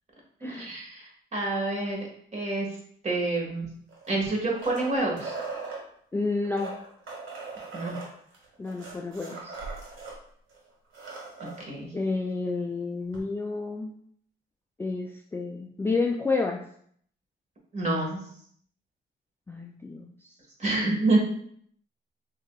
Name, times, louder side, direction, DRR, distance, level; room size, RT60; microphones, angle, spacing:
voice 1, 0.4-2.7 3.0-3.7 4.1-5.4 7.7-7.9 11.4-11.9 17.7-18.2 20.6-21.2, right 2 dB, 35° right, -2 dB, 1.6 m, -28 dB
sound 1, 3.9-5.8 6.4-10.2 10.5-10.6 10.8-11.6 13.1-13.2, right 4 dB, 80° right, 1.5 m, -39 dB
voice 2, 6.1-6.7 8.6-9.6 11.9-13.9 14.8-16.6 19.5-20.3, left 3 dB, 10° left, 1 dB, 0.3 m, -30 dB
5.7 x 2.7 x 2.3 m, 0.63 s
cardioid pair, 90°, 20 cm